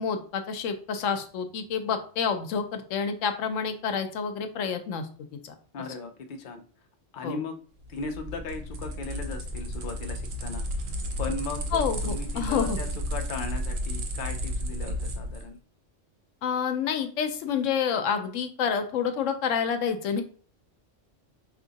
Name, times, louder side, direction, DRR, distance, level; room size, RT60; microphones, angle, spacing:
voice 1, 0.0-5.1 5.4-5.6 7.2-7.4 11.7-12.8 16.4-20.2, left 6 dB, 80° left, 7 dB, 1.0 m, -28 dB
voice 2, 5.7-6.6 7.1-7.6 7.9-10.6 11.2-15.6, left 3 dB, 55° left, 5 dB, 0.6 m, -37 dB
sound 1, 7.8-15.5, equal, 60° right, 0.8 m, -32 dB
3.6 x 2.8 x 3.9 m, 0.42 s
omnidirectional pair, 1.3 m